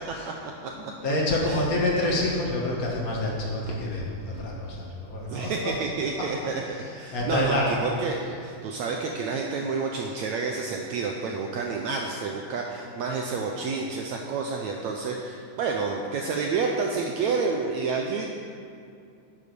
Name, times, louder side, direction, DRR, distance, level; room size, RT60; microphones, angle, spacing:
voice 1, 0.7-5.7 7.1-7.9, left 1 dB, 80° left, -3 dB, 0.8 m, -27 dB
voice 2, 5.3-6.6 6.9-18.3, right 4 dB, 85° right, 1 dB, 1.6 m, -29 dB
11.0 x 8.4 x 6.9 m, 2.5 s
omnidirectional pair, 4.2 m